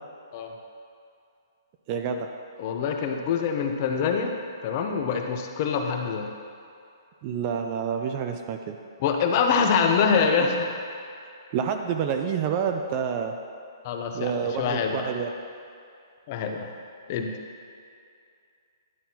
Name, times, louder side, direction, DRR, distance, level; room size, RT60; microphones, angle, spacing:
voice 1, 1.9-2.3 7.2-8.8 11.5-13.4 14.1-15.3, right 7 dB, 25° right, 5 dB, 0.3 m, -28 dB
voice 2, 2.6-4.3 4.6-6.3 9.0-10.7 13.8-14.3 14.6-15.1 16.3-16.7 17.1-17.3, left 6 dB, 30° left, 3 dB, 0.6 m, -25 dB
11.0 x 5.7 x 2.8 m, 2.4 s
hypercardioid pair, 165°, 2 cm